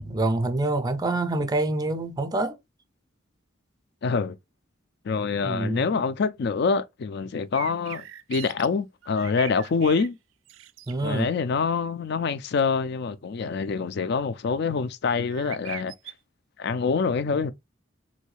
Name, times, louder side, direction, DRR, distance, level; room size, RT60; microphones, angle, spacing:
voice 1, 0.0-2.6 5.4-5.9 10.9-11.3, right 2 dB, 20° right, 0.4 m, -26 dB
voice 2, 4.0-4.4 5.0-10.2 11.0-15.9 16.6-17.5, left 5 dB, 60° left, 0.4 m, -26 dB
sound 1, 7.5-8.7 9.0-10.1 10.5-10.9 15.3-16.1, right 11 dB, 85° right, 0.4 m, -40 dB
3.1 x 2.7 x 3.1 m
head